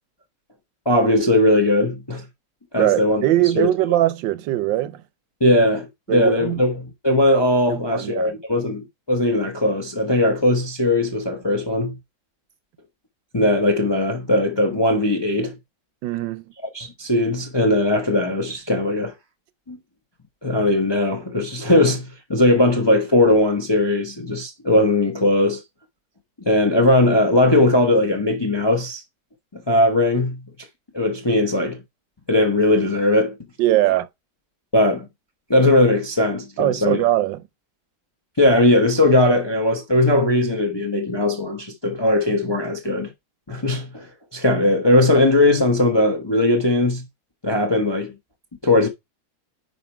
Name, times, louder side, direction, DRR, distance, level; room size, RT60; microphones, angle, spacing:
voice 1, 0.9-2.2 2.7-3.2 3.5-3.7 5.4-12.0 13.3-15.5 16.7-19.1 19.7-19.8 20.4-25.6 26.4-29.0 29.5-30.4 30.9-31.8 32.3-33.4 34.7-35.1 35.5-37.0 38.4-43.1 43.5-44.1 44.3-47.0 47.4-48.1 48.6-48.9, left 1 dB, 25° left, 0.6 m, -19 dB
voice 2, 2.8-5.0 5.5-5.6 6.1-6.6 7.7-8.3 16.0-16.4 33.6-34.1 36.6-37.4, right 14 dB, 85° right, 1.4 m, -21 dB
5.4 x 4.9 x 4.4 m
omnidirectional pair, 2.0 m